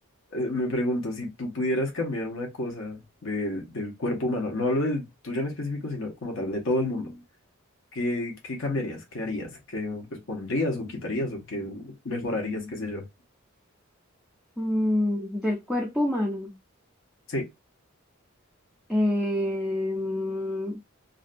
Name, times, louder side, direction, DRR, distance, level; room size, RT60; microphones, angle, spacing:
voice 1, 0.3-7.2 7.9-13.1 17.3-17.4, left 1 dB, 65° left, 0.8 m, -30 dB
voice 2, 14.6-16.5 18.9-20.9, left 1 dB, ahead, 0.4 m, -27 dB
2.5 x 2.2 x 2.4 m
head